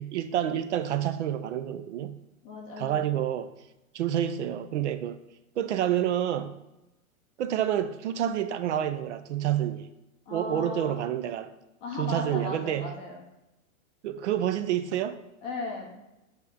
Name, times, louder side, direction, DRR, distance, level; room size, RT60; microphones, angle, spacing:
voice 1, 0.0-2.2 2.8-3.5 3.9-5.2 5.6-6.5 7.4-9.9 10.3-11.5 12.0-12.9 14.0-15.2, right 10 dB, 55° right, 0.5 m, -28 dB
voice 2, 2.4-3.2 10.3-10.9 11.8-13.2 15.4-16.0, left 3 dB, 15° left, 0.5 m, -36 dB
8.1 x 2.8 x 4.8 m
supercardioid pair, 160°, 41 cm